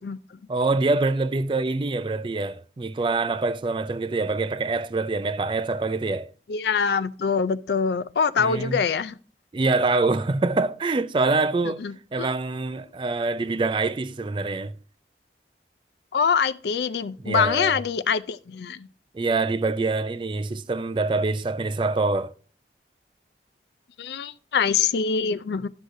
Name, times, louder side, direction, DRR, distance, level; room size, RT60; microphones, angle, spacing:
voice 1, 0.5-6.3 8.4-8.8 9.5-11.8 12.1-14.7 17.2-17.8 19.1-22.3, right 3 dB, 25° right, 0.3 m, -25 dB
voice 2, 6.5-9.2 11.8-12.3 16.1-18.9 24.0-25.7, left 6 dB, 70° left, 0.4 m, -24 dB
11.5 x 6.3 x 2.6 m
head